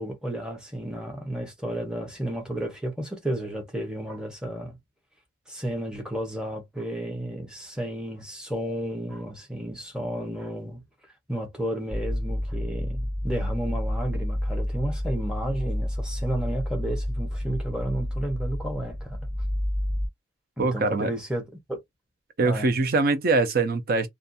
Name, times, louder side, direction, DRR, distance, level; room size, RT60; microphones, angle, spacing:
voice 1, 0.0-4.8 5.5-10.8 11.3-19.2 20.6-21.8 22.4-22.7, right 1 dB, 5° right, 0.8 m, -32 dB
sound 1, 11.9-20.1, left 1 dB, 75° right, 1.3 m, -29 dB
voice 2, 20.6-21.1 22.4-24.1, right 3 dB, 50° right, 0.5 m, -23 dB
2.5 x 2.2 x 2.6 m
head